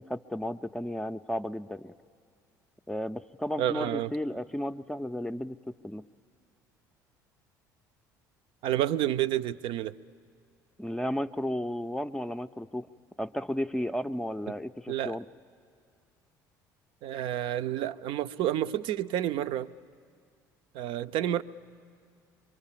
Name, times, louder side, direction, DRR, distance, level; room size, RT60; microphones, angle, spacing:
voice 1, 0.0-1.9 2.9-6.0 10.8-12.9 13.2-15.3, left 1 dB, 5° left, 8 dB, 0.5 m, -33 dB
voice 2, 3.6-4.1 8.6-9.9 14.9-15.2 17.0-19.7 20.7-21.4, right 12 dB, 60° right, 13 dB, 0.5 m, -29 dB
24.5 x 23.0 x 7.4 m, 2.2 s
hypercardioid pair, 65°, 10 cm